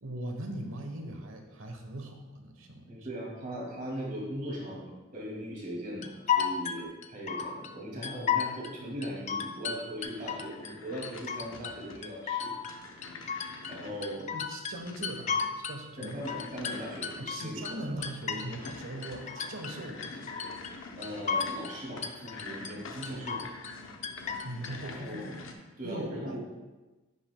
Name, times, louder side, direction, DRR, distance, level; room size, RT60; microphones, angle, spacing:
voice 1, 0.0-3.1 14.3-16.2 17.2-20.3 24.4-25.2 25.8-26.4, right 1 dB, 90° right, 4 dB, 1.1 m, -40 dB
voice 2, 2.9-12.5 13.7-14.3 16.0-18.0 20.9-23.5 24.9-25.3 25.8-26.4, equal, 45° right, -4 dB, 2.3 m, -39 dB
sound 1, 6.0-7.7 8.0-8.7 9.0-10.7 11.0-11.8 12.0-13.8 14.0-15.8 16.0-18.8 19.0-19.8 20.0-20.8 21.0-21.8 22.0-22.7 23.0-23.8 24.0-24.7, left 7 dB, 35° left, 0.4 m, -33 dB
sound 2, 10.0-25.5, left 3 dB, 80° left, 0.7 m, -47 dB
10.5 x 6.0 x 2.2 m, 1.2 s
head